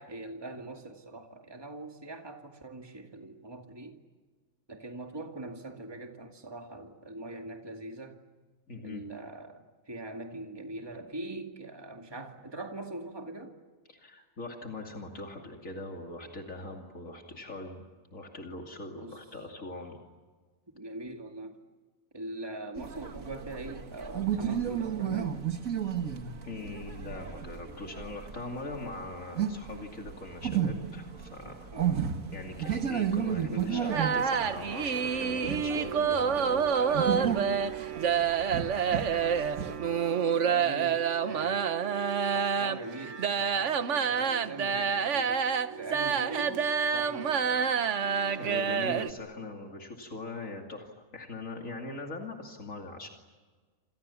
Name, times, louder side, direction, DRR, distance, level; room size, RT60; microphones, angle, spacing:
voice 1, 0.0-4.0 4.7-8.2 8.8-13.5 19.0-19.2 20.7-21.6 22.1-25.4 31.7-32.1 33.2-34.1 40.4-47.9, right 2 dB, 20° right, 3 dB, 2.3 m, -42 dB
voice 2, 8.7-9.0 13.9-17.8 18.1-20.0 26.4-31.7 32.3-37.4 37.8-38.0 48.4-53.1, left 2 dB, 75° left, 1 dB, 3.1 m, -41 dB
sound 1, 22.7-39.8, right 8 dB, 85° right, 2.1 m, -34 dB
sound 2, 33.9-49.1, right 7 dB, 65° right, 1.3 m, -28 dB
28.5 x 28.0 x 7.2 m, 1.4 s
omnidirectional pair, 1.4 m